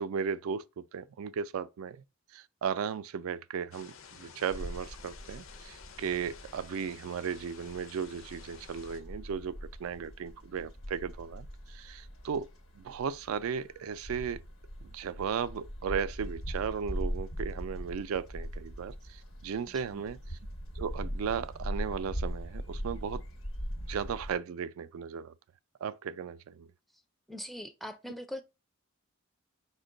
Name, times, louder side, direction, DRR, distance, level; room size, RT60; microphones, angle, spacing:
voice 1, 0.0-2.0 2.3-12.5 12.8-14.4 14.8-20.4 20.8-23.2 23.8-25.3 25.8-26.7, right 7 dB, 90° right, 0.3 m, -36 dB
sound 1, 3.7-9.0, left 7 dB, 70° left, 0.6 m, -52 dB
sound 2, 4.5-24.3, equal, 85° left, 1.1 m, -41 dB
voice 2, 19.6-20.0 27.3-28.4, left 1 dB, ahead, 0.4 m, -42 dB
5.1 x 2.2 x 3.7 m
head